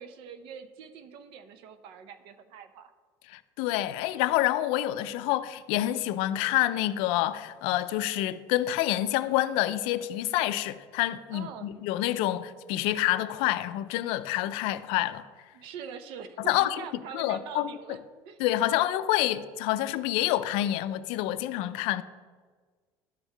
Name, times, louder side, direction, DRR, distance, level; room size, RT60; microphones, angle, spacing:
voice 1, 0.0-2.9 11.3-11.7 15.5-18.0 18.2-18.4, right 7 dB, 65° right, 0.6 m, -43 dB
voice 2, 3.3-15.2 16.5-16.8 17.1-18.0 18.4-22.0, left 14 dB, 75° left, 0.4 m, -27 dB
11.5 x 4.6 x 3.3 m
cardioid pair, 145°, 9 cm